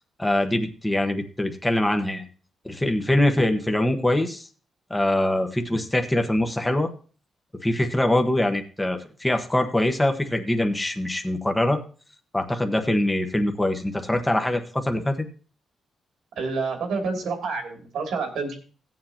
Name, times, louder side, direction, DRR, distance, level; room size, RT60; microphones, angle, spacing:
voice 1, 0.2-2.2 2.6-4.5 4.9-6.9 7.6-11.8 12.3-15.3, left 1 dB, 10° left, 5 dB, 1.2 m, -23 dB
voice 2, 16.4-18.6, right 4 dB, 85° right, 3 dB, 2.8 m, -28 dB
17.0 x 7.6 x 3.0 m, 0.39 s
cardioid pair, 85°, 0 cm